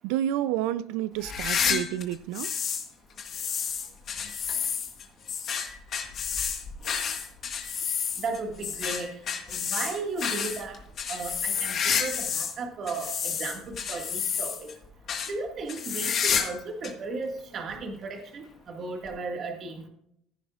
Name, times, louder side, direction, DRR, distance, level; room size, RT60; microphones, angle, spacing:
voice 1, 0.0-2.5, right 12 dB, 90° right, 0.5 m, -29 dB
sound 1, 1.2-2.9 3.2-12.6 12.9-14.7 15.1-15.3 15.7-16.6 16.8-16.9 17.7-17.8 19.1-19.2, left 7 dB, 40° left, 1.6 m, -30 dB
voice 2, 8.2-9.1 9.5-10.8 11.1-14.7 15.3-19.9, right 3 dB, 40° right, 1.9 m, -35 dB
15.5 x 10.5 x 2.5 m
cardioid pair, 150°, 0 cm